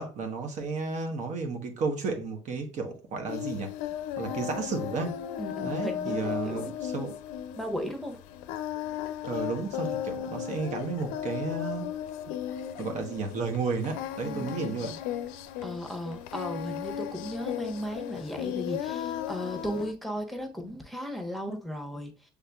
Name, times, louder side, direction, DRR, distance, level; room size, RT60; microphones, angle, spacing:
voice 1, 0.0-3.7 4.2-5.2 5.6-7.2 9.2-11.9 12.8-14.9, right 4 dB, 55° right, 1.0 m, -33 dB
Singing, 3.3-19.9, left 10 dB, 75° left, 0.4 m, -36 dB
voice 2, 5.4-6.7 7.6-8.2 14.2-15.0 15.6-22.1, equal, ahead, 1.1 m, -36 dB
6.5 x 3.4 x 2.3 m
hypercardioid pair, 65°, 14 cm